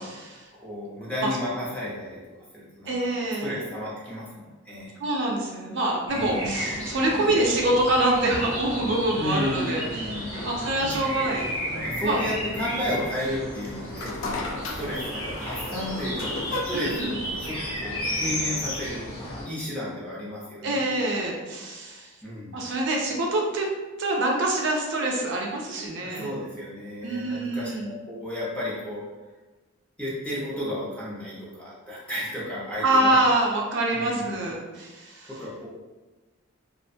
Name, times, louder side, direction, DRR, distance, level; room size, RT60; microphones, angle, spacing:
voice 1, 0.0-0.4 1.2-1.3 2.9-3.6 5.0-11.4 12.0-12.2 16.7-17.2 20.6-22.1 22.5-23.7 24.0-26.3 27.0-27.9 32.8-35.3, right 1 dB, 55° right, -1 dB, 0.4 m, -25 dB
voice 2, 0.5-2.2 2.5-3.0 3.4-4.9 6.1-6.6 9.1-10.5 10.8-11.2 11.7-20.8 22.2-22.6 26.0-29.0 30.0-33.2 33.9-34.4 35.3-35.7, left 1 dB, 5° left, -7 dB, 0.5 m, -33 dB
sound 1, 6.1-19.5, equal, 75° left, 1.0 m, -33 dB
sound 2, 13.5-18.8, left 2 dB, 60° left, 0.3 m, -36 dB
2.4 x 2.1 x 2.5 m, 1.2 s
head